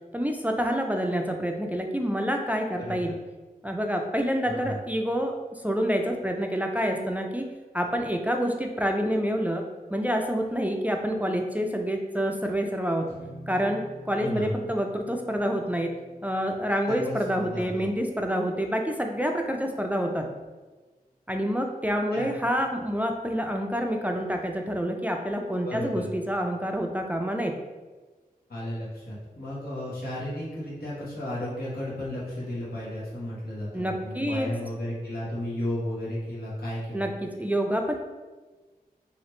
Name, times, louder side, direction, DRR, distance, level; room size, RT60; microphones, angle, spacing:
voice 1, 0.1-3.1 3.6-5.3 5.6-7.5 7.7-9.6 9.9-13.1 13.5-15.9 16.2-20.3 21.3-27.5 33.7-34.5 36.9-37.9, equal, 10° right, 2 dB, 0.3 m, -27 dB
voice 2, 4.5-4.8 14.2-14.5 16.9-17.9 22.1-22.3 25.6-26.1 28.5-37.1, left 1 dB, 85° left, -8 dB, 1.1 m, -33 dB
sound 1, 13.0-19.5, equal, 45° left, 1.1 m, -49 dB
2.9 x 2.4 x 3.1 m, 1.3 s
cardioid pair, 45°, 16 cm